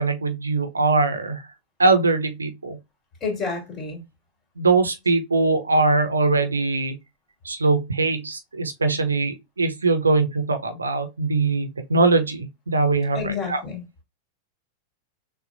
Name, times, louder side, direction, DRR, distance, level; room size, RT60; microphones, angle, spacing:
voice 1, 0.0-1.5 1.8-2.8 4.6-6.9 7.4-13.6, right 3 dB, 75° right, 0.8 m, -22 dB
voice 2, 3.2-4.0 13.1-13.8, left 5 dB, 25° left, 2.5 m, -29 dB
6.5 x 2.4 x 2.6 m
figure-of-eight pair, 90°, 0 cm